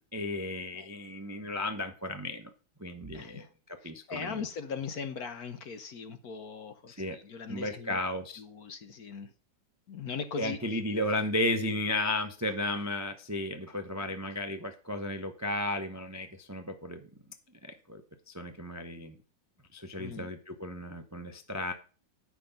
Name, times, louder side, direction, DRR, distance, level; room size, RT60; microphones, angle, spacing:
voice 1, 0.0-2.5 2.8-3.4 3.8-4.4 6.9-7.2 7.5-8.4 10.4-17.1 17.9-18.0 18.3-19.2 19.7-21.7, left 1 dB, 15° right, 7 dB, 0.5 m, -34 dB
voice 2, 3.1-3.5 3.8-8.0 8.4-9.3 9.9-10.8 20.0-20.3, left 5 dB, 55° left, 10 dB, 1.2 m, -40 dB
9.9 x 6.1 x 5.3 m, 0.37 s
omnidirectional pair, 2.1 m